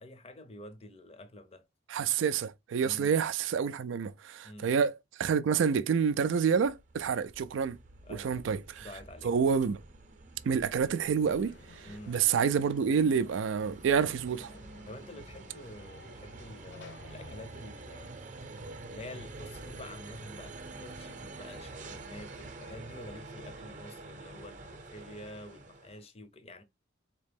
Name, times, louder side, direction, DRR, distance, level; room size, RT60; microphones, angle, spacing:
voice 1, 0.0-1.7 2.8-3.1 4.4-4.8 8.0-8.5 8.8-9.5 11.8-12.2 14.9-18.2 18.9-26.6, left 1 dB, 30° left, 0.6 m, -48 dB
voice 2, 1.9-7.8 8.1-8.9 9.2-9.8 10.5-14.5, right 6 dB, 75° right, 0.3 m, -28 dB
sound 1, 6.6-26.0, right 2 dB, 40° right, 0.7 m, -47 dB
Conversation / Crowd, 11.2-17.4, left 2 dB, 60° left, 0.8 m, -55 dB
4.1 x 2.9 x 3.4 m
head